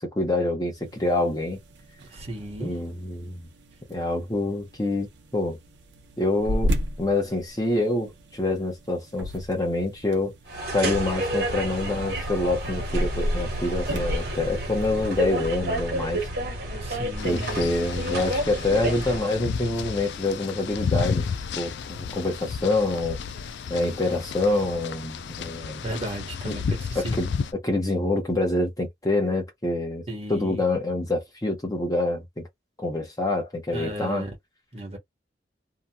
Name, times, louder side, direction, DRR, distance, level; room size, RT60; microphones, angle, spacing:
voice 1, 0.1-1.6 2.6-3.4 3.9-5.6 6.2-6.7 7.0-10.3 10.7-16.2 17.2-21.3 21.6-23.2 23.7-25.8 26.4-26.6 26.9-30.0 30.3-32.5 32.8-34.2, left 2 dB, 20° left, 1.1 m, -26 dB
sound 1, 0.7-15.5, equal, 85° right, 0.8 m, -35 dB
voice 2, 2.1-2.8 16.8-17.5 25.8-27.2 30.1-30.6 33.7-34.3 34.7-35.0, right 1 dB, 35° right, 1.3 m, -34 dB
sound 2, 10.5-19.3, right 1 dB, 60° right, 1.4 m, -30 dB
sound 3, 17.2-27.5, left 5 dB, 70° left, 0.4 m, -32 dB
2.9 x 2.5 x 2.2 m
head